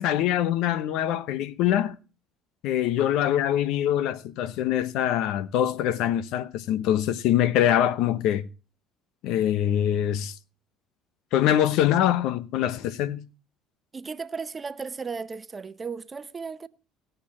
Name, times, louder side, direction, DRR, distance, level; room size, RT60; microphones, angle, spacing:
voice 1, 0.0-2.0 2.6-8.5 9.2-10.3 11.3-13.3, left 11 dB, 70° left, 0.8 m, -24 dB
voice 2, 13.9-16.7, right 5 dB, 30° right, 0.9 m, -35 dB
18.5 x 6.7 x 4.2 m
supercardioid pair, 85°, 0 cm